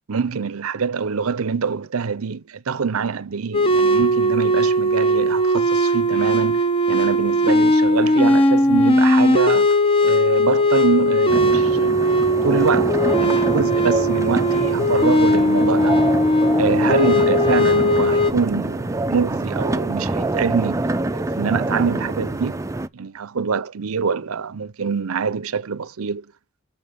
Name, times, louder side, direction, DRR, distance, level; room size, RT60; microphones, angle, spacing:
voice 1, 0.1-6.6 6.9-9.8 10.0-12.0 12.4-16.0 16.6-20.9 21.1-22.6 22.9-26.3, right 5 dB, 80° right, 0.6 m, -25 dB
sound 1, 3.5-18.3, equal, 25° left, 0.7 m, -18 dB
sound 2, 11.3-22.9, right 2 dB, 15° right, 0.4 m, -25 dB
7.1 x 5.5 x 5.5 m
head